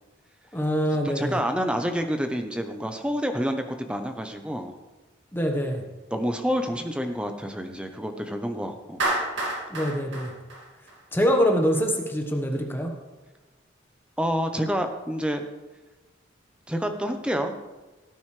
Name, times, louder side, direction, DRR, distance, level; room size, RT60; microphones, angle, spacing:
voice 1, 0.5-1.4 5.3-5.8 9.7-10.3 11.1-12.9, equal, 10° left, 2 dB, 1.1 m, -24 dB
voice 2, 1.0-4.7 6.1-9.0 14.2-15.4 16.7-17.5, equal, 5° right, 5 dB, 0.8 m, -28 dB
Clapping, 9.0-11.3, right 2 dB, 70° right, 2.2 m, -29 dB
16.5 x 9.3 x 3.3 m, 1.2 s
head